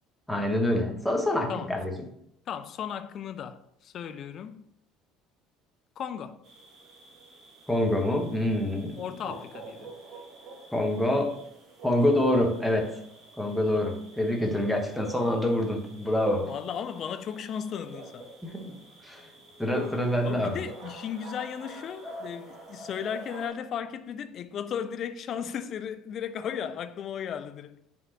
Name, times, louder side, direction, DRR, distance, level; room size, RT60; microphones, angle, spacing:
voice 1, 0.3-1.9 7.7-9.0 10.7-11.3 11.8-12.9 13.4-16.5 18.4-18.8 19.0-19.3 19.6-20.6, left 1 dB, 5° left, 1.1 m, -26 dB
voice 2, 2.5-4.6 6.0-6.4 9.0-10.0 13.7-13.9 16.4-18.3 20.2-27.8, left 8 dB, 45° left, 0.4 m, -35 dB
sound 1, 6.4-23.5, right 2 dB, 40° right, 1.4 m, -48 dB
9.6 x 3.6 x 2.9 m
figure-of-eight pair, 60°, 0 cm